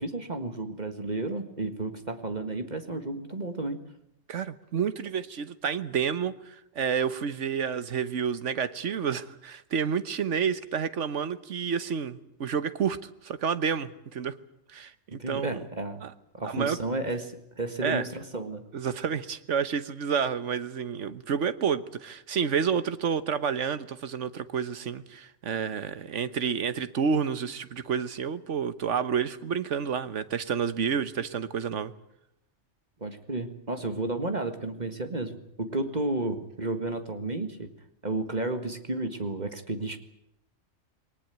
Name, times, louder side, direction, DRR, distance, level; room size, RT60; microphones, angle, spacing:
voice 1, 0.0-3.8 15.1-16.0 16.3-18.6 33.0-37.7 38.0-40.0, right 2 dB, 40° right, 8 dB, 1.9 m, -32 dB
voice 2, 4.3-13.0 13.2-14.3 14.7-15.6 16.0-16.1 16.4-16.8 17.8-18.1 18.7-31.9, right 7 dB, 85° right, 13 dB, 1.4 m, -29 dB
21.5 x 19.0 x 9.2 m, 0.79 s
omnidirectional pair, 1.2 m